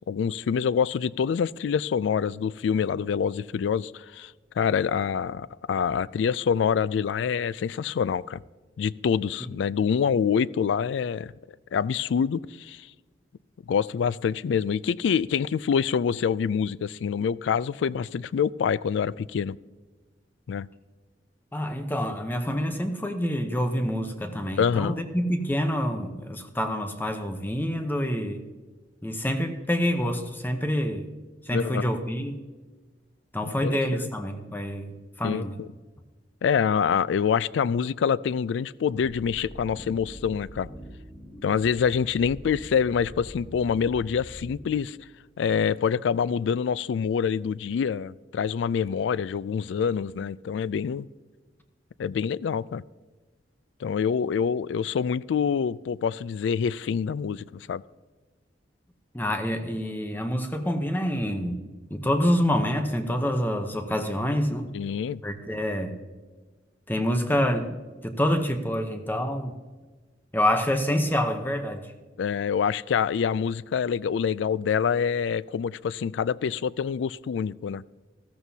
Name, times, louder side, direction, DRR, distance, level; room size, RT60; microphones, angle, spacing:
voice 1, 0.1-8.4 8.8-11.3 11.7-12.9 13.7-19.6 20.5-20.7 24.6-25.0 31.5-31.9 33.6-34.1 35.2-35.7 36.4-40.7 41.4-45.0 45.4-51.1 52.0-52.8 53.8-57.8 64.7-65.2 72.2-77.8, left 7 dB, 85° left, 20 dB, 0.3 m, -26 dB
voice 2, 21.5-28.5 29.0-31.1 31.5-32.4 33.3-35.6 41.3-41.4 59.1-61.6 61.9-64.7 65.2-66.0 66.9-67.8 68.0-69.5 70.3-71.9, equal, 10° left, 6 dB, 0.8 m, -27 dB
sound 1, 38.9-44.6, equal, 30° left, 4.4 m, -44 dB
14.5 x 14.0 x 2.8 m, 1.3 s
head